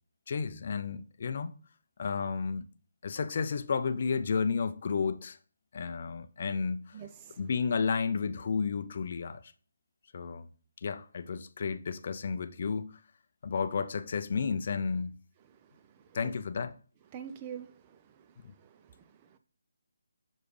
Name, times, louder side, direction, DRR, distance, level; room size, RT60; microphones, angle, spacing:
voice 1, 0.3-1.5 2.0-2.6 3.0-5.4 5.7-7.0 7.4-9.4 10.1-10.5 10.8-13.0 13.4-15.1 16.1-16.7, left 5 dB, 45° left, 0.5 m, -32 dB
voice 2, 6.9-7.4 15.5-16.3 17.1-19.4, right 8 dB, 20° right, 0.5 m, -47 dB
6.4 x 4.9 x 3.2 m
hypercardioid pair, 165°, 0 cm